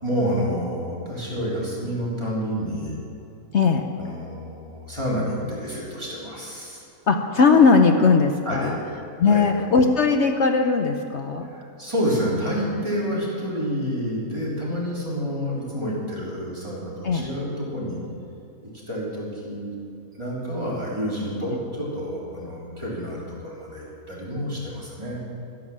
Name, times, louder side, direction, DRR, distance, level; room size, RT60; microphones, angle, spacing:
voice 1, 0.0-2.9 4.0-6.8 8.5-8.7 9.2-9.4 11.5-18.0 18.6-19.7 20.1-25.2, equal, 20° right, -7 dB, 3.6 m, -29 dB
voice 2, 3.5-3.8 7.1-8.8 9.2-11.5 17.0-17.2, left 4 dB, 60° left, 5 dB, 0.9 m, -18 dB
12.5 x 11.0 x 7.4 m, 2.7 s
omnidirectional pair, 1.5 m